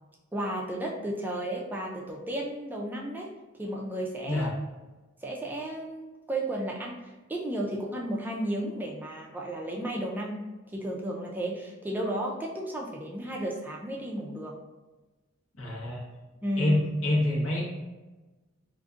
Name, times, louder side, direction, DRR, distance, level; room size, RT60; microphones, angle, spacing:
voice 1, 0.3-3.3 3.6-4.5 5.2-10.4 10.7-14.6 16.4-16.8, right 1 dB, 10° right, -2 dB, 0.3 m, -33 dB
voice 2, 15.6-16.0 16.6-17.6, left 1 dB, 75° left, -4 dB, 1.0 m, -26 dB
3.8 x 2.5 x 2.4 m, 1.2 s
head